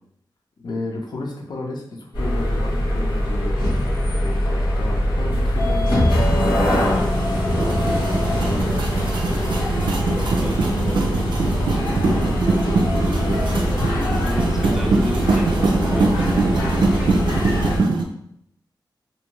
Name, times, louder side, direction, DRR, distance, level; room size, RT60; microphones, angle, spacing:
voice 1, 0.6-3.6 4.1-8.9 9.3-9.7 10.5-13.9, left 2 dB, 60° left, 1 dB, 0.6 m, -33 dB
sound 1, 2.1-17.8, equal, 80° left, 1.2 m, -22 dB
sound 2, 7.5-18.0, right 3 dB, 75° right, 0.4 m, -22 dB
voice 2, 14.2-16.3, equal, 5° right, 1 dB, 0.4 m, -30 dB
2.6 x 2.2 x 2.9 m, 0.72 s
wide cardioid pair, 110°, 8 cm